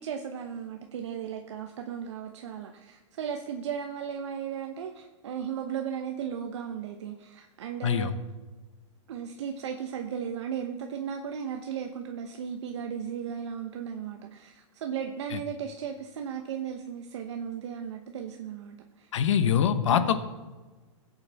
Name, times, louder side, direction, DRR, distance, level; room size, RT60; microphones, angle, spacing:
voice 1, 0.0-8.2 9.1-19.1 19.9-20.2, right 8 dB, 60° right, 4 dB, 0.9 m, -36 dB
voice 2, 19.1-20.2, left 8 dB, 70° left, 10 dB, 1.0 m, -23 dB
17.5 x 8.1 x 3.5 m, 1.2 s
supercardioid pair, 170°, 16 cm